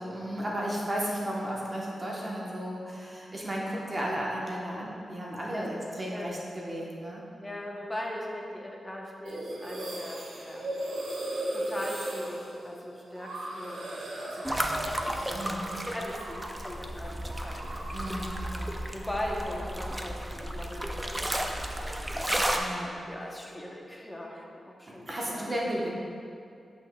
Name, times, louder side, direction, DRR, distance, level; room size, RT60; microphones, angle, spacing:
voice 1, 0.0-7.3 15.3-15.7 17.9-18.4 22.5-23.0 25.1-25.9, equal, 30° right, -4 dB, 0.9 m, -34 dB
voice 2, 7.4-10.7 11.5-14.7 15.0-18.0 18.5-22.0 22.4-25.6, left 1 dB, 15° left, -1 dB, 0.8 m, -40 dB
sound 1, 9.2-16.7 16.9-18.4, right 1 dB, 85° right, 0.9 m, -37 dB
sound 2, 14.4-22.6, right 1 dB, 10° right, 0.4 m, -33 dB
7.3 x 5.9 x 2.2 m, 2.4 s
wide cardioid pair, 110°, 0 cm